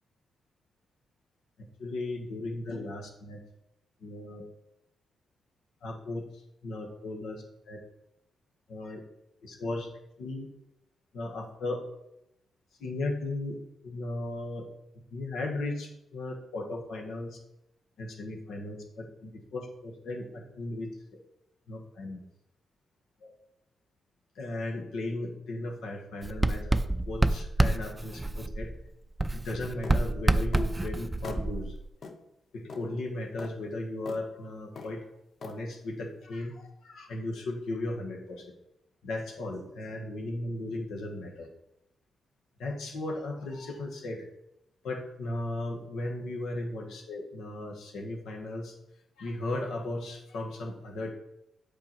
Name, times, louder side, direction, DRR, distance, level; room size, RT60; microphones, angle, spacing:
voice 1, 1.8-3.4 4.0-4.4 5.8-7.8 8.7-9.0 9.4-9.9 10.2-10.5 11.1-11.8 12.8-13.6 13.8-14.6 15.1-17.4 18.0-20.9 21.7-22.2 23.2-23.3 24.3-28.7 29.3-31.7 32.5-35.1 35.4-38.5 39.0-41.5 42.6-44.3 44.8-48.8 49.2-51.1, left 2 dB, 80° left, 1 dB, 1.4 m, -36 dB
Writing, 26.2-28.9 29.2-31.9, right 2 dB, 20° right, 0.4 m, -28 dB
sound 1, 29.8-30.0 30.5-30.7 31.2-31.4 32.0-32.2 32.7-32.9 33.4-33.5 34.1-34.2 34.8-34.9 35.4-35.6, left 4 dB, 65° left, 0.9 m, -41 dB
7.6 x 4.7 x 4.5 m, 0.83 s
supercardioid pair, 55°, 0 cm